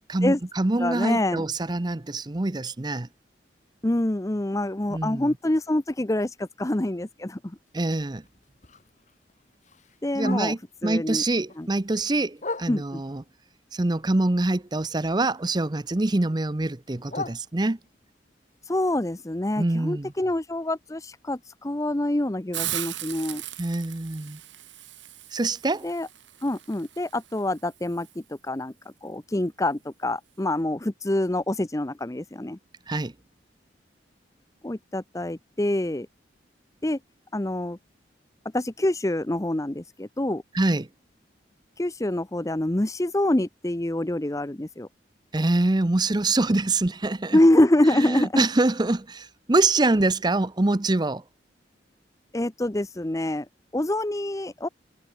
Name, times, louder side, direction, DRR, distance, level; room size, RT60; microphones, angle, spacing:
voice 1, 0.1-3.1 4.9-5.3 7.7-8.2 10.1-10.6 10.8-13.2 13.7-17.8 19.6-20.1 23.6-24.4 25.3-25.9 32.9-33.1 40.5-40.9 45.3-47.4 47.9-51.2, right 2 dB, 25° right, 0.7 m, -25 dB
voice 2, 0.8-1.5 3.8-7.6 10.0-10.6 10.8-11.2 11.6-11.7 12.7-13.0 18.6-23.4 25.8-26.1 26.4-28.7 29.0-32.6 34.6-36.1 36.8-37.0 37.3-37.8 38.5-40.4 41.8-44.9 47.3-48.4 52.3-53.5 53.7-54.7, left 1 dB, 20° left, 0.7 m, -26 dB
Bark, 7.7-10.9 11.3-13.2 13.6-15.5 15.7-18.1 18.5-22.4 22.7-22.8 23.1-23.5 24.0-24.1 24.4-24.5 25.0-25.1, left 3 dB, 40° left, 2.4 m, -42 dB
Hiss, 22.5-28.2, right 13 dB, 90° right, 5.9 m, -38 dB
head